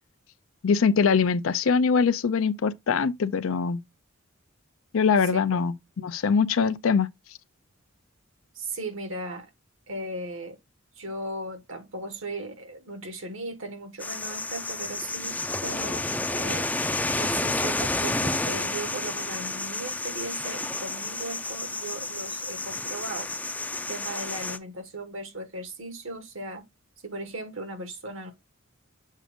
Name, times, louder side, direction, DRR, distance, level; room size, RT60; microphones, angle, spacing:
voice 1, 0.6-3.8 4.9-5.7 6.0-7.1, left 5 dB, 75° left, 0.5 m, -22 dB
voice 2, 8.5-9.5 9.9-10.6 11.0-16.0 16.3-16.7 17.2-23.3 23.9-26.7 27.0-28.3, right 2 dB, 70° right, 1.5 m, -37 dB
sound 1, 14.0-24.6, left 2 dB, 10° left, 0.4 m, -30 dB
7.3 x 2.5 x 5.1 m
head